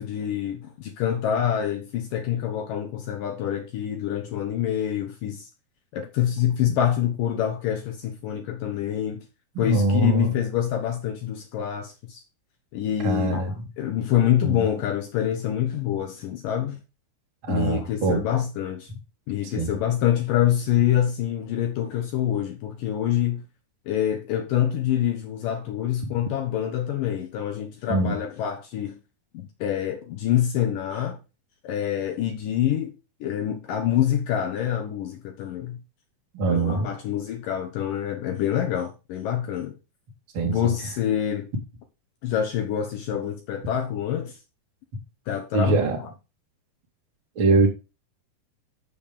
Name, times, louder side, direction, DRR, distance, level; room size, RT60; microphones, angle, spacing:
voice 1, 0.0-5.5 5.9-9.2 9.6-12.2 12.7-16.8 17.5-18.9 19.3-23.4 23.9-29.0 29.3-31.2 31.6-32.9 33.2-35.8 36.5-39.8 40.4-41.5 42.2-44.4 45.3-45.8, left 10 dB, 70° left, 2.3 m, -26 dB
voice 2, 9.5-10.3 13.0-13.6 14.4-14.7 17.4-18.3 19.5-19.8 26.0-26.1 27.9-28.2 36.3-36.9 40.3-40.7 45.5-46.0 47.4-47.7, right 3 dB, 40° right, 2.4 m, -23 dB
7.9 x 7.1 x 5.1 m
omnidirectional pair, 4.7 m